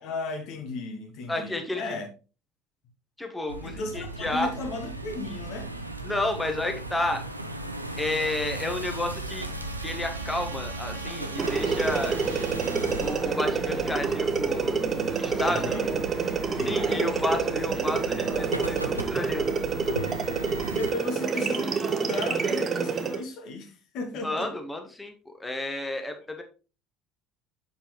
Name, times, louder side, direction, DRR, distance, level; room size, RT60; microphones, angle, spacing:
voice 1, 0.0-2.1 3.6-5.7 15.3-15.9 16.6-17.1 20.7-24.5, left 3 dB, 55° left, 1.3 m, -35 dB
voice 2, 1.3-2.0 3.2-4.5 6.0-7.2 8.0-9.5 9.8-12.2 13.0-14.8 15.2-15.8 16.6-19.5 24.2-26.4, left 1 dB, 10° left, 1.2 m, -31 dB
sound 1, 3.5-20.9, right 2 dB, 90° right, 0.5 m, -37 dB
Trumpet, 8.5-13.0, right 6 dB, 70° right, 1.0 m, -46 dB
sound 2, 11.4-23.2, right 5 dB, 35° right, 0.9 m, -28 dB
7.2 x 5.4 x 3.1 m
figure-of-eight pair, 60°, 0 cm